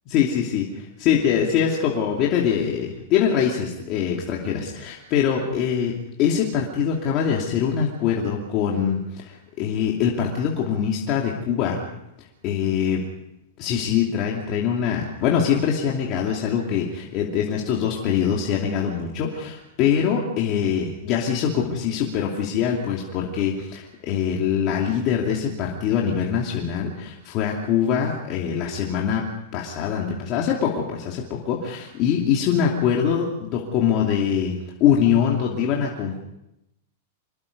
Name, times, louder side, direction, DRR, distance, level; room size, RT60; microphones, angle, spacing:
voice 1, 0.1-11.8 12.2-13.0 13.6-36.2, left 8 dB, 30° left, -2 dB, 2.8 m, -23 dB
26.0 x 22.0 x 5.4 m, 0.87 s
supercardioid pair, 165°, 0 cm